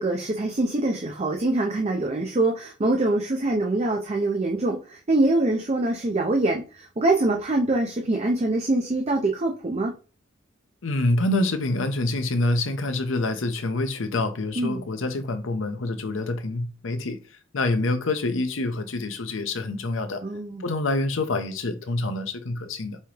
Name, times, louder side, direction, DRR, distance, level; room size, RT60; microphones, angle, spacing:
voice 1, 0.0-9.9 14.6-14.8 20.2-20.7, right 2 dB, 35° right, 0.6 m, -24 dB
voice 2, 10.8-17.2 17.5-20.2 20.6-23.0, left 2 dB, 80° left, 0.7 m, -26 dB
5.6 x 3.1 x 2.9 m
head